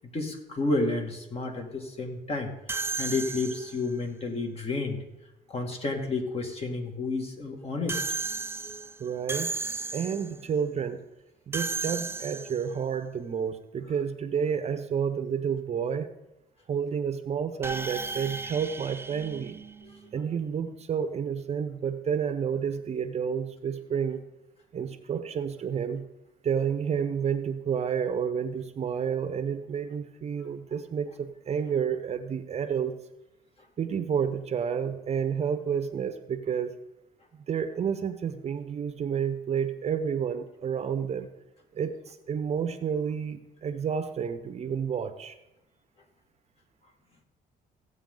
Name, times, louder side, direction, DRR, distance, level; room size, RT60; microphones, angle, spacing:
voice 1, 0.1-2.5 3.0-5.0 5.5-8.0 19.8-19.9, left 3 dB, 35° left, 2 dB, 2.2 m, -30 dB
sound 1, 2.7-4.0 7.9-10.4 11.5-12.8 17.6-20.2, right 4 dB, 15° right, 0.4 m, -34 dB
voice 2, 9.0-9.6 9.9-11.0 11.5-16.1 16.7-19.6 20.1-24.2 24.7-26.1 26.4-32.9 33.8-36.7 37.5-41.3 41.7-45.4, right 7 dB, 40° right, 9 dB, 0.8 m, -30 dB
16.0 x 8.0 x 3.9 m, 0.94 s
cardioid pair, 110°, 17 cm